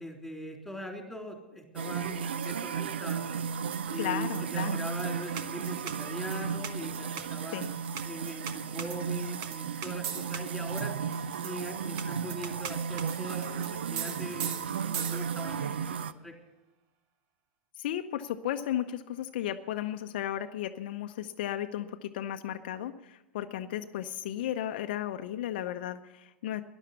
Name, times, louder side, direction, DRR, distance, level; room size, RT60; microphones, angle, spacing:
voice 1, 0.0-3.3 3.9-7.6 8.1-11.0 11.4-15.9 16.2-16.3, equal, ahead, 2 dB, 3.5 m, -41 dB
sound 1, 1.8-16.1, right 6 dB, 75° right, 0.6 m, -34 dB
sound 2, 2.1-15.6, right 8 dB, 50° right, 1.2 m, -43 dB
voice 2, 4.0-4.8 7.5-7.7 17.8-26.6, left 11 dB, 60° left, 7 dB, 0.7 m, -34 dB
13.5 x 11.0 x 8.2 m, 1.0 s
hypercardioid pair, 95°, 6 cm